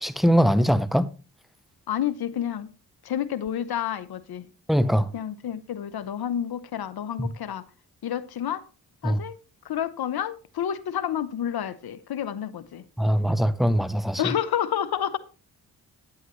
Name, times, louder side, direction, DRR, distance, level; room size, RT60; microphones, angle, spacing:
voice 1, 0.0-1.1 4.7-5.1 7.2-7.3 9.0-9.2 13.0-14.2, equal, ahead, 0.7 m, -21 dB
voice 2, 1.9-2.7 3.0-4.5 5.1-7.6 8.0-8.6 9.0-9.4 9.6-12.8 14.2-15.2, left 9 dB, 60° left, 0.9 m, -29 dB
9.4 x 8.0 x 3.2 m
supercardioid pair, 40°, 42 cm